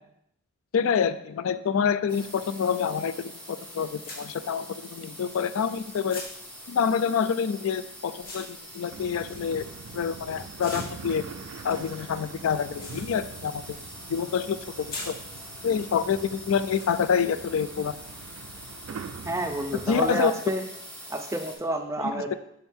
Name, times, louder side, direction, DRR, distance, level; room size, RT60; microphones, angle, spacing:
voice 1, 0.7-6.2 6.7-9.6 9.9-11.2 11.6-13.6 14.1-15.1 15.6-18.0 19.9-20.3 22.0-22.3, left 7 dB, 65° left, 13 dB, 0.3 m, -27 dB
sound 1, 2.1-2.2 3.4-3.5 4.0-5.7 6.1-10.2 10.6-14.1 14.3-15.9 16.7-16.9, left 2 dB, 40° left, 1.1 m, -43 dB
sound 2, 2.1-21.6, equal, 5° left, 0.8 m, -44 dB
sound 3, 8.9-20.2, right 6 dB, 80° right, 0.3 m, -44 dB
voice 2, 19.2-20.6 21.1-22.3, right 2 dB, 10° right, 5 dB, 0.4 m, -29 dB
6.3 x 4.4 x 3.5 m, 0.77 s
head